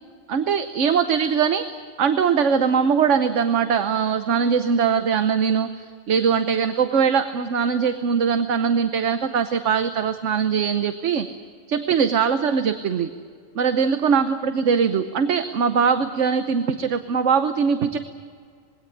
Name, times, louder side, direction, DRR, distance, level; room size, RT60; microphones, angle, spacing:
voice 1, 0.3-11.3 11.7-13.1 13.5-18.0, right 6 dB, 70° right, 9 dB, 1.2 m, -21 dB
22.5 x 17.0 x 9.9 m, 2.1 s
omnidirectional pair, 1.3 m